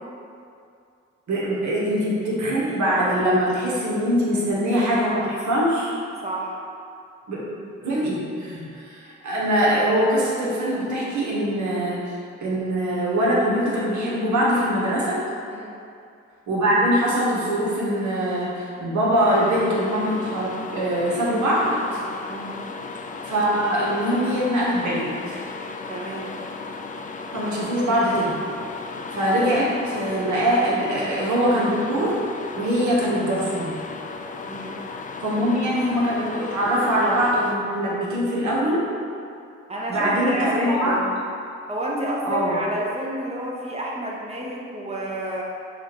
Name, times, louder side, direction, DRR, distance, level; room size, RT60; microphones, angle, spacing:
voice 1, 1.3-5.9 7.3-7.4 7.8-12.1 12.4-15.2 16.5-22.0 23.2-25.4 27.3-28.3 29.1-32.1 32.6-33.8 35.2-38.8 39.9-40.9 42.2-42.6, equal, 60° right, -6 dB, 1.2 m, -22 dB
voice 2, 6.2-6.6 15.5-15.8 22.3-22.5 25.9-26.3 29.2-29.3 32.6-32.7 34.4-34.8 39.7-41.1 41.7-45.4, right 1 dB, 20° right, -3 dB, 0.9 m, -30 dB
sound 1, 19.3-37.6, left 4 dB, 25° left, 0.3 m, -35 dB
5.4 x 2.5 x 3.0 m, 2.4 s
hypercardioid pair, 45°, 32 cm